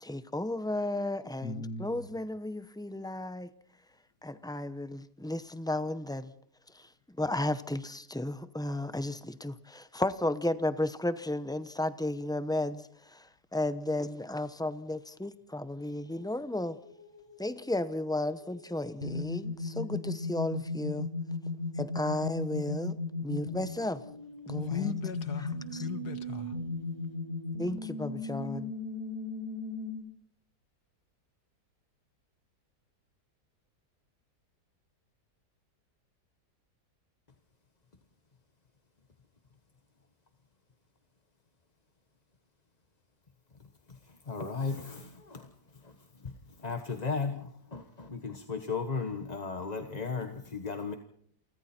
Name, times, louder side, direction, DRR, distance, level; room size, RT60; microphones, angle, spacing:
voice 1, 0.0-3.5 4.2-6.3 6.7-6.9 7.2-16.8 17.4-21.1 21.8-24.0 24.5-24.9 25.4-25.8 27.6-28.7, left 1 dB, 5° left, 0.5 m, -34 dB
voice 2, 1.4-2.0 24.6-26.6, left 6 dB, 70° left, 2.0 m, -37 dB
sound 1, 16.1-29.9, left 3 dB, 35° right, 6.1 m, -37 dB
voice 3, 44.3-45.5 45.8-45.9 46.2-46.4 46.6-50.9, left 4 dB, 25° left, 1.3 m, -35 dB
29.0 x 24.0 x 4.4 m
omnidirectional pair, 1.8 m